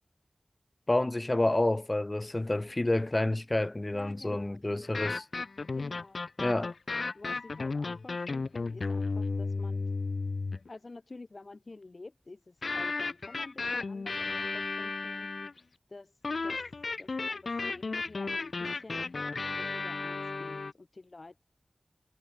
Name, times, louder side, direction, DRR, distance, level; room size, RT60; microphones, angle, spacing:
voice 1, 0.9-5.2 6.4-6.7, left 2 dB, 30° left, 2.2 m, -29 dB
voice 2, 3.9-5.2 5.7-6.2 6.6-6.7 7.1-9.8 10.7-15.3 15.9-16.1 16.4-16.6 17.0-19.1 19.5-21.4, left 3 dB, 55° left, 3.8 m, -50 dB
sound 1, 4.8-10.7 12.6-15.6 16.2-20.7, left 3 dB, 75° left, 2.5 m, -34 dB
wide cardioid pair, 60°, 0 cm